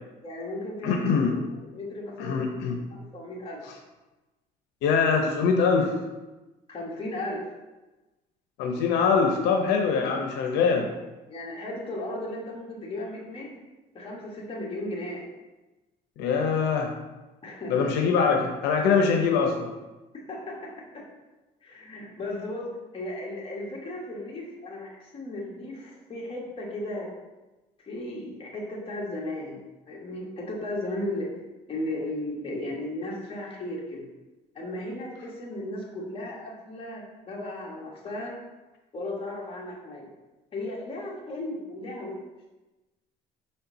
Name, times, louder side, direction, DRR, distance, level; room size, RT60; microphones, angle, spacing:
voice 1, 0.2-1.2 1.6-2.5 3.1-3.6 6.7-7.5 8.7-8.9 10.6-10.9 11.3-13.5 13.9-15.3 17.4-17.9 20.3-21.0 21.6-27.1 27.8-31.3 31.7-34.1 34.5-38.4 38.9-40.1 40.5-42.2, left 1 dB, 35° left, -3 dB, 1.8 m, -35 dB
voice 2, 0.8-1.4 2.2-2.8 4.8-5.9 8.6-10.8 16.2-16.9 17.7-19.7, left 5 dB, 90° left, 2 dB, 0.7 m, -23 dB
5.5 x 4.4 x 4.0 m, 1.1 s
cardioid pair, 110°, 17 cm